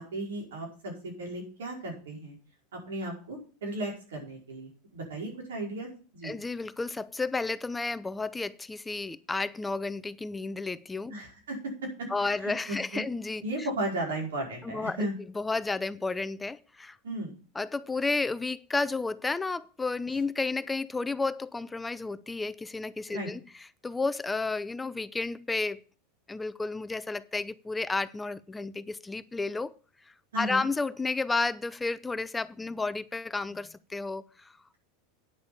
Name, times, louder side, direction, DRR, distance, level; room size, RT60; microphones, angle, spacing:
voice 1, 0.0-2.4 2.7-6.3 11.1-12.1 12.4-13.1 13.4-15.1 17.0-17.3 23.1-23.3 30.3-30.6, right 1 dB, 90° right, 5.0 m, -35 dB
voice 2, 6.2-11.1 12.1-13.7 14.6-15.1 15.3-17.0 17.5-25.8 26.3-29.7 30.4-34.5, left 3 dB, 10° left, 0.5 m, -32 dB
9.7 x 6.4 x 7.0 m
supercardioid pair, 115°, 0 cm